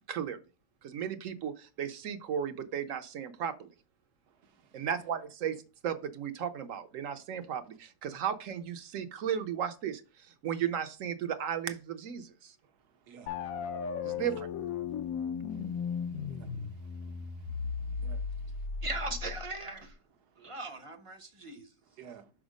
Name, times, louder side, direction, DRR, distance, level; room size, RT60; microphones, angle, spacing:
voice 1, 0.1-0.4 0.8-3.7 4.7-12.5 14.0-14.5, right 8 dB, 65° right, 0.9 m, -35 dB
voice 2, 4.3-4.9 12.6-14.2 15.5-18.8 20.2-20.6 21.8-22.2, right 7 dB, 80° right, 1.4 m, -58 dB
sound 1, 13.3-19.9, left 6 dB, 65° left, 1.0 m, -36 dB
voice 3, 18.8-19.9 20.4-21.7, right 3 dB, 30° right, 0.6 m, -39 dB
6.2 x 4.4 x 5.0 m
omnidirectional pair, 1.7 m